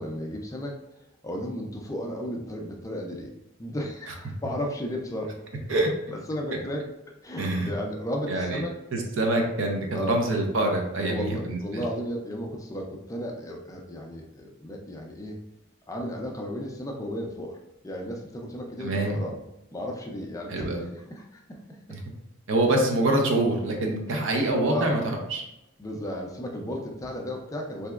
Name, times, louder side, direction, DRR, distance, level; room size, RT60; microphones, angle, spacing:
voice 1, 0.0-3.3 3.6-5.4 6.1-6.9 7.2-8.7 9.9-10.3 11.1-15.4 15.9-17.6 17.8-19.4 19.7-20.7 20.9-21.6 24.1-24.2 24.7-25.0 25.8-27.9, equal, 15° left, 1 dB, 0.3 m, -34 dB
voice 2, 7.4-7.7 8.3-8.6 8.9-11.8 18.8-19.2 20.5-20.8 21.9-22.0 22.5-25.4, right 1 dB, 75° right, 1 dB, 0.6 m, -25 dB
3.3 x 2.8 x 2.3 m, 0.88 s
head